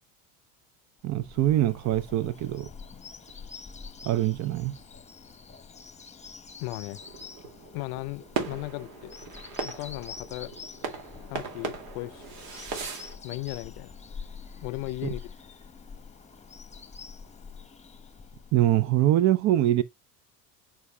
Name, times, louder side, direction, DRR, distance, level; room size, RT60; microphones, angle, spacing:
voice 1, 1.0-2.7 4.0-4.7 15.0-15.1 18.5-19.8, right 13 dB, 40° right, 0.6 m, -23 dB
Bird vocalization bird call bird song, 1.1-19.1, left 5 dB, 15° left, 1.1 m, -46 dB
voice 2, 6.6-7.0 7.7-9.1 9.6-10.5 11.3-12.2 13.2-13.9 14.6-15.2, left 21 dB, 55° left, 0.6 m, -36 dB
sound 1, 6.9-13.2, right 5 dB, 65° right, 2.3 m, -38 dB
10.5 x 6.1 x 2.2 m
hypercardioid pair, 80°, 47 cm